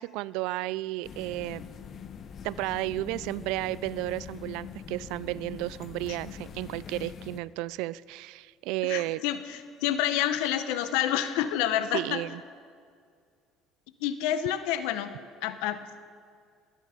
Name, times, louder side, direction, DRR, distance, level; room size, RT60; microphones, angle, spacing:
voice 1, 0.0-1.7 2.4-9.2 11.9-12.4, right 17 dB, 80° right, 21 dB, 0.3 m, -33 dB
sound 1, 1.0-7.4, left 7 dB, 45° left, 1.0 m, -43 dB
voice 2, 8.8-12.2 14.0-15.1 15.4-16.0, left 11 dB, 85° left, 11 dB, 0.9 m, -28 dB
20.5 x 10.5 x 5.1 m, 2.1 s
supercardioid pair, 95°, 0 cm